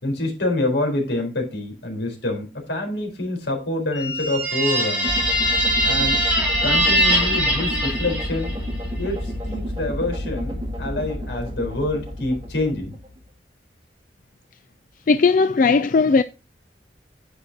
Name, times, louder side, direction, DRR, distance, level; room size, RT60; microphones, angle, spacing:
voice 1, 0.0-5.1 5.8-6.2 6.6-8.5 9.0-12.9, left 2 dB, 85° left, 4.3 m, -26 dB
sound 1, 3.9-8.7, right 1 dB, 10° right, 5.0 m, -22 dB
sound 2, 5.0-13.2, left 1 dB, 30° right, 1.9 m, -30 dB
voice 2, 15.1-16.2, left 4 dB, 50° left, 0.4 m, -17 dB
10.0 x 7.9 x 2.9 m
head